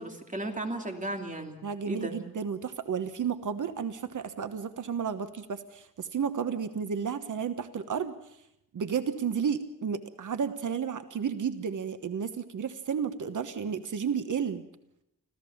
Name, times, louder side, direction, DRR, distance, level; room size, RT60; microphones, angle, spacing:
voice 1, 0.0-2.1, right 1 dB, 25° right, 4 dB, 2.7 m, -35 dB
voice 2, 1.6-8.1 8.7-14.6, right 7 dB, 70° right, 10 dB, 1.2 m, -32 dB
26.0 x 15.5 x 7.2 m, 0.82 s
wide cardioid pair, 130°, 32 cm